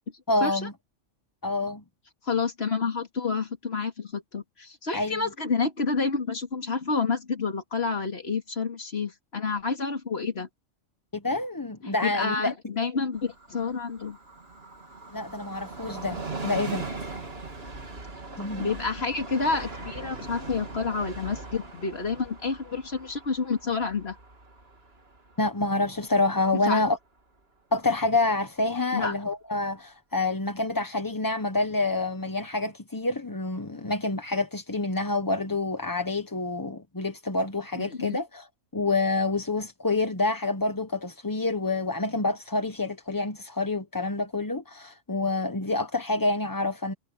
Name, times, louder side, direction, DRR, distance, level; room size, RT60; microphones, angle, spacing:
voice 1, 0.3-0.7 1.4-1.8 4.9-5.2 11.1-12.5 15.1-16.2 16.4-17.1 18.4-18.7 25.4-27.0 27.7-38.5 38.7-46.9, left 2 dB, 20° left, 0.9 m, -27 dB
voice 2, 2.2-10.5 11.8-14.2 18.6-24.2 26.6-26.8 28.9-29.1 37.8-38.2, left 4 dB, 55° left, 2.6 m, -29 dB
Train, 13.1-26.5 26.8-26.9, right 3 dB, 55° right, 2.7 m, -40 dB
omnidirectional pair, 1.3 m